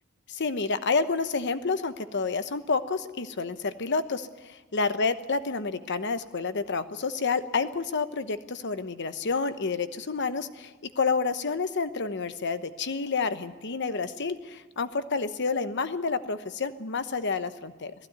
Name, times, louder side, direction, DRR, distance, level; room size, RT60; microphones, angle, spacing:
voice 1, 0.3-17.9, left 4 dB, 60° left, 11 dB, 1.0 m, -29 dB
18.5 x 15.5 x 9.5 m, 1.2 s
head